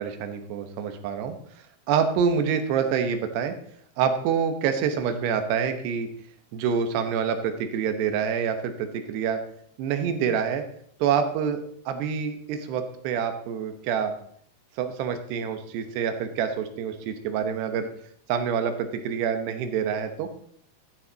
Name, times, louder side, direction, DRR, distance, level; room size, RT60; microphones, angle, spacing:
voice 1, 0.0-1.4 1.9-3.5 4.0-6.1 6.5-9.4 9.8-10.6 11.0-11.6 11.9-14.1 14.8-17.9 18.3-20.3, right 7 dB, 75° right, 7 dB, 2.8 m, -26 dB
13.5 x 9.1 x 3.9 m, 0.63 s
omnidirectional pair, 5.5 m